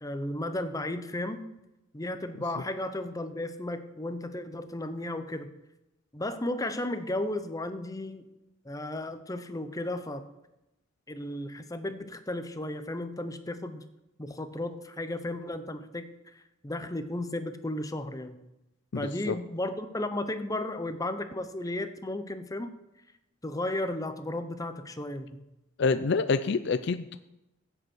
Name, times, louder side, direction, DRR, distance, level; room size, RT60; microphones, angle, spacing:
voice 1, 0.0-1.4 1.9-5.5 6.1-8.3 8.6-10.3 11.1-13.8 14.2-16.1 16.3-18.4 18.9-22.7 23.4-25.4, left 1 dB, 20° left, 10 dB, 0.8 m, -34 dB
voice 2, 18.9-19.3 25.8-27.2, left 4 dB, 60° left, 11 dB, 0.5 m, -27 dB
15.5 x 8.0 x 4.5 m, 0.93 s
head